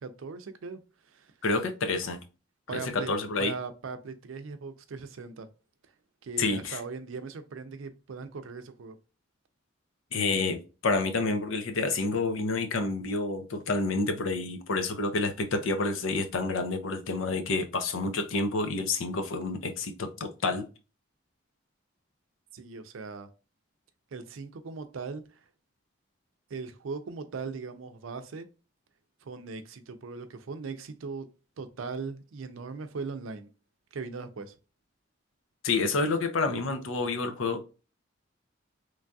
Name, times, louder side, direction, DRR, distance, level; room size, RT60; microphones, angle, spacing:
voice 1, 0.0-0.8 1.1-1.3 2.7-3.1 3.4-5.5 6.2-9.0 22.5-23.3 24.1-25.4 26.5-28.5 29.2-31.3 31.6-33.5 33.9-34.5, right 4 dB, 90° right, 0.5 m, -39 dB
voice 2, 1.4-2.2 2.7-3.5 6.4-6.8 10.1-20.7 35.6-37.6, left 3 dB, 90° left, 0.6 m, -29 dB
3.2 x 2.3 x 2.5 m
head